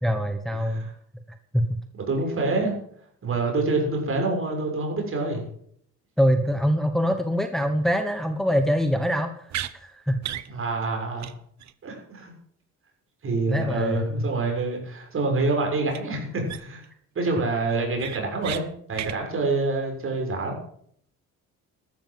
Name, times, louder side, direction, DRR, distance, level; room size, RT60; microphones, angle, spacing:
voice 1, 0.0-0.9 1.5-1.6 6.2-10.2 13.5-14.3, equal, ahead, 7 dB, 1.3 m, -24 dB
voice 2, 0.6-0.9 2.1-2.8 3.2-5.4 10.5-11.3 11.8-12.3 13.2-16.8 17.1-20.6, right 3 dB, 45° right, 2 dB, 6.8 m, -26 dB
sound 1, 9.5-9.7 10.2-10.5 10.8-10.9 11.2-11.3 11.6-11.7 15.9-16.0 16.5-16.9 17.2-17.3 17.7-18.6 18.9-19.2, right 12 dB, 65° right, 1.1 m, -33 dB
13.5 x 13.0 x 7.7 m, 0.66 s
cardioid pair, 110°, 30 cm